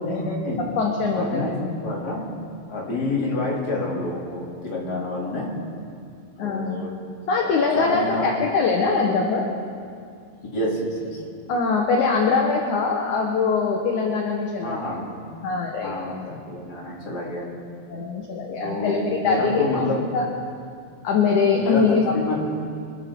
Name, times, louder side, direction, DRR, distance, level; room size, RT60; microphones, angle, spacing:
voice 1, 0.0-0.7 1.1-2.3 2.7-5.6 6.4-6.9 7.4-7.5 7.7-8.3 10.5-11.2 14.6-15.2 15.8-17.5 18.6-20.1 21.6-22.3, left 2 dB, 25° left, -4 dB, 3.0 m, -28 dB
voice 2, 0.8-1.4 6.4-6.8 7.3-9.4 11.5-14.8 15.4-15.9 17.9-19.8 20.1-20.3 21.0-22.1, left 4 dB, 65° left, 0 dB, 2.1 m, -22 dB
26.0 x 14.5 x 3.8 m, 2.4 s
omnidirectional pair, 4.8 m